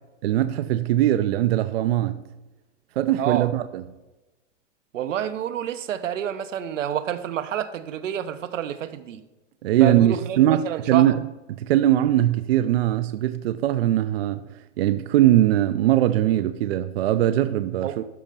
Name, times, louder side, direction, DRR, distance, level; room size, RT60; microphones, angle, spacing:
voice 1, 0.2-2.2 3.0-3.8 9.6-11.2 11.5-14.4 14.8-18.0, right 13 dB, 55° right, 0.5 m, -21 dB
voice 2, 3.2-3.5 4.9-9.2 9.8-11.2 17.8-18.0, right 10 dB, 80° right, 0.9 m, -28 dB
13.0 x 4.4 x 5.4 m
hypercardioid pair, 150°, 37 cm